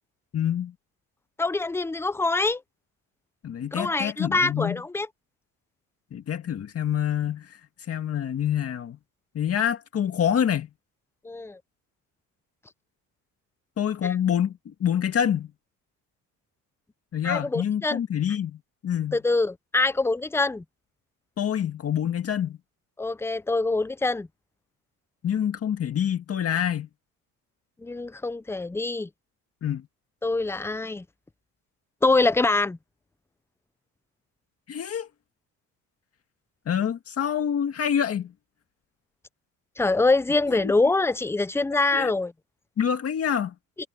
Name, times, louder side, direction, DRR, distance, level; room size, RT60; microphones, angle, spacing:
voice 1, 0.3-0.7 3.4-4.8 6.1-7.6 7.9-9.0 9.3-10.7 13.8-15.5 17.1-19.2 21.4-22.6 25.2-26.9 29.6-29.8 34.7-35.1 36.7-38.3 40.5-40.7 41.9-42.1 42.8-43.5, left 9 dB, 45° left, 1.9 m, -26 dB
voice 2, 1.4-2.6 3.7-5.1 11.2-11.6 14.0-14.1 17.2-18.0 19.1-20.6 23.0-24.3 27.8-29.1 30.2-31.0 32.0-32.8 39.8-42.3, left 3 dB, 5° left, 0.5 m, -24 dB
cardioid pair, 115°, 34 cm